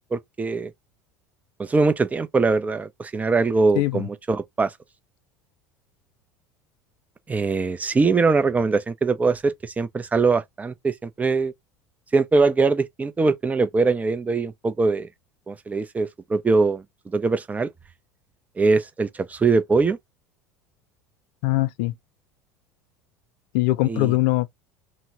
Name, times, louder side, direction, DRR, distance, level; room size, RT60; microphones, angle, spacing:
voice 1, 0.1-0.7 1.6-4.7 7.3-11.5 12.1-15.1 15.5-17.7 18.6-20.0 23.9-24.2, right 4 dB, 15° right, 0.6 m, -22 dB
voice 2, 3.8-4.1 21.4-21.9 23.5-24.5, left 18 dB, 60° left, 0.4 m, -21 dB
3.0 x 2.2 x 2.9 m
hypercardioid pair, 75°, 9 cm